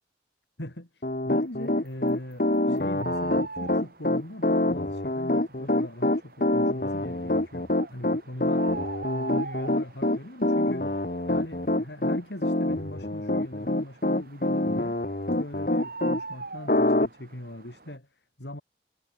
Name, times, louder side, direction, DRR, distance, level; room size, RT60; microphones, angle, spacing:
voice 1, 0.6-10.9 11.3-15.0 15.4-18.6, left 1 dB, 75° left, 3.7 m, -41 dB
Piano, 1.0-16.2 16.7-17.1, left 1 dB, 50° left, 1.4 m, -25 dB
sound 1, 1.6-18.0, right 3 dB, 55° right, 1.6 m, -43 dB
head